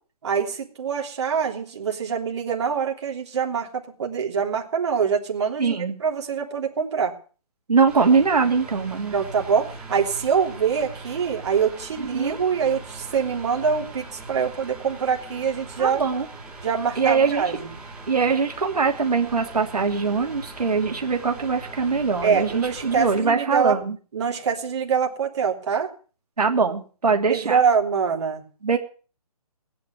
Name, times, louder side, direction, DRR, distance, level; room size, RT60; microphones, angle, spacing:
voice 1, 0.2-7.1 9.1-16.0 16.6-17.6 22.2-23.7 24.1-25.9 27.3-28.4, right 6 dB, 45° right, 1 dB, 3.3 m, -24 dB
voice 2, 5.6-6.0 7.7-9.1 12.0-12.4 15.8-16.3 17.0-17.5 18.1-24.0 26.4-27.6 28.6-28.8, right 5 dB, 85° right, 2 dB, 2.9 m, -22 dB
Mechanical fan, 7.9-23.2, right 3 dB, 5° right, 2.9 m, -41 dB
17.5 x 10.5 x 7.2 m, 0.41 s
hypercardioid pair, 165°, 20 cm